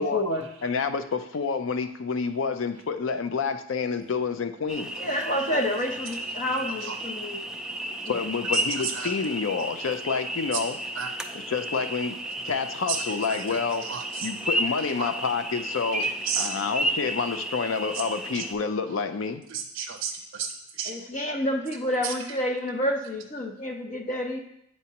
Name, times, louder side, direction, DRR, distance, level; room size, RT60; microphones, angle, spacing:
voice 1, 0.0-0.4 5.0-7.4 8.1-8.2 20.9-24.4, left 1 dB, 40° left, 3 dB, 0.7 m, -29 dB
voice 2, 0.6-4.9 8.1-10.8 11.3-12.2 12.4-13.9 14.2-16.1 16.4-19.4, left 5 dB, 70° left, 9 dB, 0.5 m, -28 dB
sound 1, 4.7-18.5, right 1 dB, 5° right, 0.3 m, -33 dB
voice 3, 6.5-7.0 8.5-9.1 9.6-9.7 11.0-11.1 12.9-13.0 13.3-14.3 15.0-15.1 16.0-16.6 17.0-17.1 18.3-18.4 19.5-20.9 22.0-22.1, right 7 dB, 85° right, 4 dB, 0.4 m, -33 dB
8.2 x 4.3 x 2.9 m, 0.76 s
head